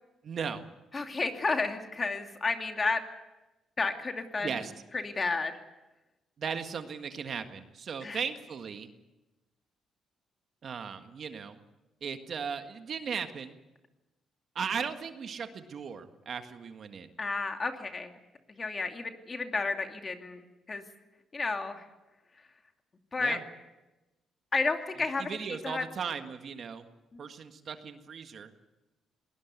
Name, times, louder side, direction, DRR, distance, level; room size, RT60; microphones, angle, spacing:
voice 1, 0.2-0.6 4.4-4.7 6.4-8.9 10.6-11.6 12.0-13.6 14.5-17.1 23.2-23.4 25.2-26.9 27.2-28.5, right 6 dB, 55° right, 7 dB, 1.7 m, -37 dB
voice 2, 0.9-3.0 3.8-4.6 4.9-5.6 8.0-8.2 17.2-18.2 18.5-20.4 20.7-20.8 21.3-21.8 23.1-23.4 24.5-25.4 25.6-25.8 27.1-27.2, left 3 dB, 30° left, 5 dB, 2.6 m, -31 dB
21.0 x 19.0 x 8.3 m, 1.1 s
cardioid pair, 90°, 0 cm